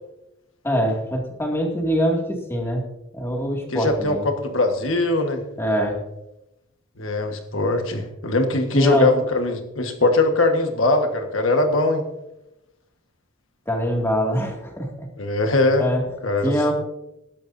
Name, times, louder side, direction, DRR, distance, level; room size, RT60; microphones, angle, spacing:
voice 1, 0.6-2.9 3.1-4.2 5.6-6.0 8.7-9.1 13.7-15.1 15.8-16.0 16.4-16.7, equal, 10° left, 0 dB, 2.2 m, -23 dB
voice 2, 3.7-5.4 7.0-12.0 15.2-15.8 16.2-16.7, left 2 dB, 80° left, 5 dB, 1.4 m, -21 dB
20.0 x 11.0 x 2.7 m, 0.91 s
head